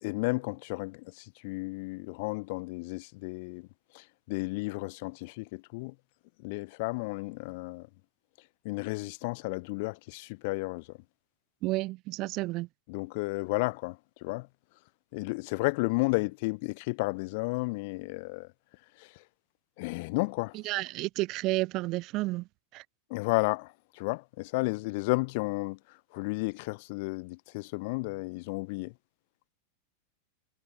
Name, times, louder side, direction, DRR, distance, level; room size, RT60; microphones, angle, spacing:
voice 1, 0.0-3.7 3.9-5.9 6.4-7.9 8.7-10.9 12.9-14.5 15.1-18.5 19.0-19.1 19.8-20.6 23.1-25.8 26.1-28.9, left 26 dB, 50° left, 1.7 m, -32 dB
voice 2, 11.6-12.7 20.6-22.4 22.7-22.8, right 20 dB, 40° right, 0.6 m, -31 dB
figure-of-eight pair, 90°, 0 cm